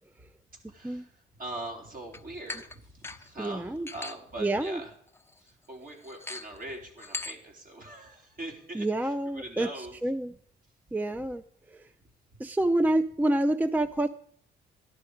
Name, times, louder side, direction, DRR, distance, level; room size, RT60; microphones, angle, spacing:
voice 1, 0.6-4.9 5.4-9.9, right 2 dB, 45° right, 0 dB, 4.1 m, -42 dB
sound 1, 2.1-2.2 2.5-2.8 3.0-3.3 3.9-4.2 4.6-4.7 5.1-5.4 6.0-6.6 7.0-7.3, left 3 dB, 10° left, 1.0 m, -38 dB
voice 2, 3.4-3.9 4.4-4.8 8.7-10.3 10.9-11.4 11.7-11.8 12.4-14.1, right 1 dB, 10° right, 11 dB, 0.5 m, -28 dB
14.0 x 11.5 x 5.0 m, 0.63 s
cardioid pair, 90°, 20 cm